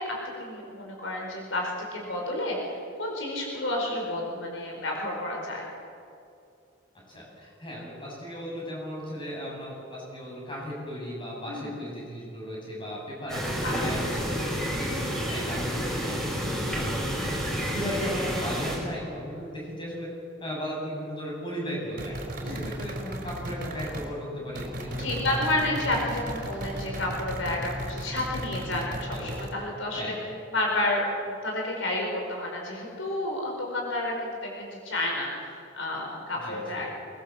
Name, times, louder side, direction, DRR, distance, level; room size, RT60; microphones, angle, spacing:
voice 1, 0.0-5.7 11.4-11.8 13.6-14.3 14.7-14.9 22.4-22.7 25.0-30.1 30.5-36.9, left 1 dB, 75° left, 0 dB, 4.9 m, -31 dB
voice 2, 7.1-20.1 20.4-25.7 29.1-29.5 30.0-30.2 36.3-36.8, equal, 25° left, -3 dB, 7.7 m, -36 dB
sound 1, 13.3-18.8, equal, ahead, 6.1 m, -30 dB
sound 2, 22.0-24.1 24.5-29.5, right 1 dB, 45° right, 3.8 m, -35 dB
23.0 x 21.5 x 7.3 m, 2.5 s
head